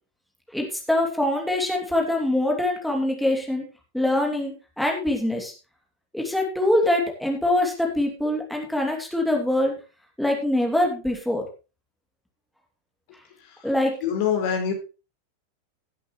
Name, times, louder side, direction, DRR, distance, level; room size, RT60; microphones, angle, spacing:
voice 1, 0.5-3.7 3.9-5.5 6.1-9.8 10.2-11.4 13.6-13.9, left 1 dB, ahead, 0 dB, 2.8 m, -24 dB
voice 2, 13.4-13.7 14.0-14.7, left 8 dB, 50° left, 3 dB, 3.4 m, -25 dB
17.0 x 8.4 x 3.2 m, 0.31 s
figure-of-eight pair, 90°, 0 cm